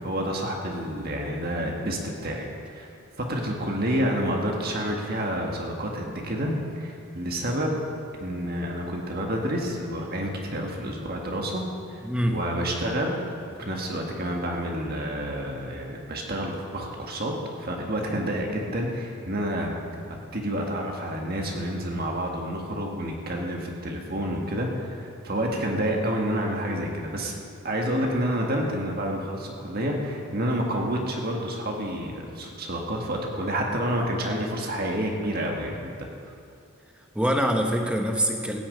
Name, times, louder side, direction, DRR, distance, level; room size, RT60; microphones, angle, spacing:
voice 1, 0.0-2.9 3.2-7.8 8.2-11.6 11.9-12.0 12.3-13.2 13.6-17.3 17.6-19.7 20.3-27.3 27.6-36.3, equal, 45° right, 0 dB, 1.7 m, -29 dB
voice 2, 12.0-12.4 37.1-38.6, equal, 5° right, 3 dB, 1.1 m, -24 dB
16.0 x 7.2 x 8.6 m, 2.4 s
head